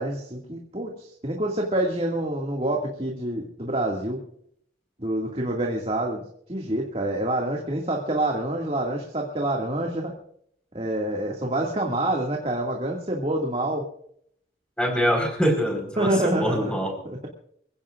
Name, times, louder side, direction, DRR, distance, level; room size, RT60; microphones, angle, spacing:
voice 1, 0.0-4.2 5.0-6.2 6.5-10.1 10.7-13.9 16.0-16.8 17.0-17.3, right 1 dB, 35° right, 0 dB, 2.1 m, -27 dB
voice 2, 14.8-16.9, equal, 5° left, 3 dB, 4.6 m, -24 dB
25.5 x 16.0 x 2.5 m, 0.67 s
head